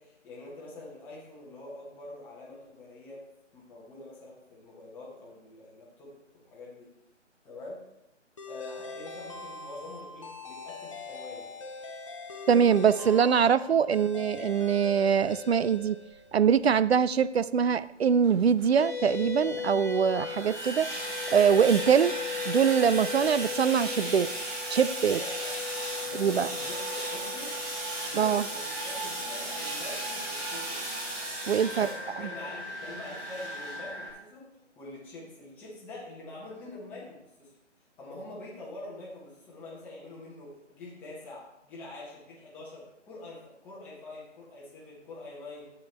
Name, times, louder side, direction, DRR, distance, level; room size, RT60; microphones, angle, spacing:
voice 1, 0.0-3.2 3.5-6.9 7.4-7.8 8.5-11.5 25.1-25.6 26.0-27.6 28.0-30.8 31.6-34.5 34.7-37.5 38.0-45.7, left 2 dB, 5° left, -6 dB, 1.0 m, -45 dB
sound 1, 8.4-16.5, left 3 dB, 25° left, 0.7 m, -42 dB
voice 2, 12.5-16.0 16.3-20.9 21.3-22.1 22.5-24.3 24.7-25.2 26.1-26.5 28.1-28.4 31.5-31.9, right 7 dB, 60° right, 16 dB, 0.4 m, -23 dB
sound 2, 16.3-16.4 17.1-17.2 18.1-34.1, right 1 dB, 15° right, 3.2 m, -36 dB
sound 3, 18.8-31.4, left 7 dB, 65° left, 1.4 m, -39 dB
11.5 x 8.4 x 3.2 m, 0.86 s
figure-of-eight pair, 155°, 37 cm